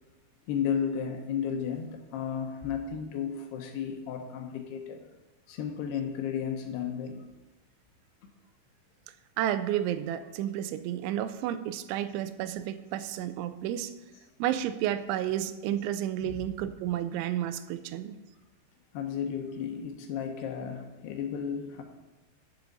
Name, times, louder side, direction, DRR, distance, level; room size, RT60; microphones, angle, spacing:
voice 1, 0.5-5.0 5.5-7.2 18.9-21.8, left 7 dB, 75° left, 4 dB, 2.6 m, -33 dB
voice 2, 9.4-13.9 14.4-18.2, right 11 dB, 90° right, 12 dB, 3.0 m, -31 dB
12.5 x 7.0 x 4.0 m, 1.1 s
omnidirectional pair, 5.2 m